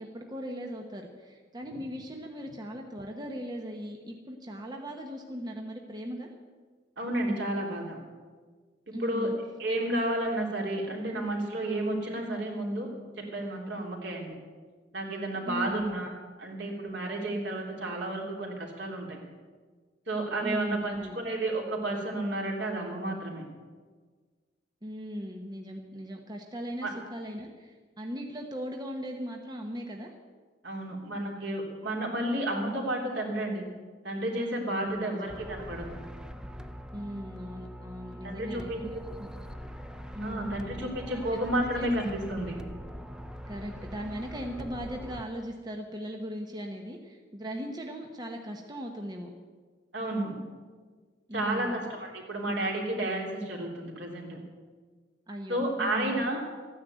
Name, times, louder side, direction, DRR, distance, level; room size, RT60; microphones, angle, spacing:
voice 1, 0.0-6.3 8.9-9.3 15.5-15.9 20.4-21.2 24.8-30.1 34.7-35.3 36.9-38.7 39.2-39.3 40.1-40.6 41.1-41.9 43.5-49.3 51.3-51.7 55.3-56.3, equal, 25° right, 2 dB, 1.1 m, -38 dB
voice 2, 7.0-8.0 8.9-9.3 9.6-12.9 13.2-14.4 14.9-16.1 16.4-19.2 20.1-23.4 26.8-26.9 30.6-33.6 34.0-36.0 38.2-38.8 40.2-42.6 49.9-50.4 51.3-54.4 55.5-56.4, right 1 dB, 70° right, -1 dB, 3.3 m, -31 dB
sound 1, 35.3-45.2, equal, 5° right, 0.6 m, -42 dB
14.0 x 9.9 x 8.1 m, 1.5 s
head